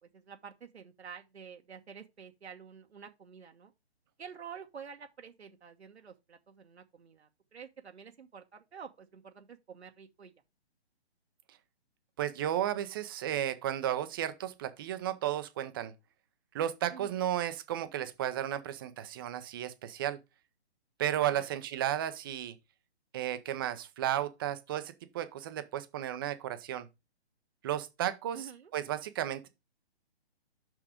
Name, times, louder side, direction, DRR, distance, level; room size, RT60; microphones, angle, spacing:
voice 1, 0.0-3.7 4.2-10.3 16.9-17.2 21.3-21.5 28.3-28.7, right 7 dB, 75° right, 1.3 m, -49 dB
voice 2, 12.2-15.9 16.5-20.2 21.0-22.5 23.1-26.9 27.6-29.5, right 11 dB, 20° right, 0.7 m, -33 dB
6.2 x 5.8 x 5.0 m
hypercardioid pair, 145°, 33 cm